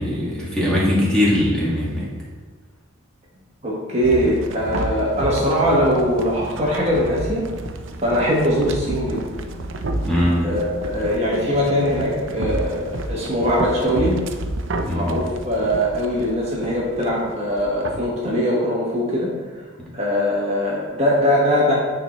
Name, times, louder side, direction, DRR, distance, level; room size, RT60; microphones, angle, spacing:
voice 1, 0.0-2.1 10.0-10.5 14.8-15.2 19.8-19.9, left 1 dB, 5° left, -6 dB, 1.8 m, -21 dB
voice 2, 3.6-7.4 8.0-9.4 10.4-14.2 14.9-19.3 19.5-19.6 19.9-21.7, equal, 30° right, -5 dB, 1.4 m, -21 dB
sound 1, 4.0-18.1, right 2 dB, 65° right, 0.6 m, -30 dB
8.8 x 4.5 x 4.3 m, 1.4 s
head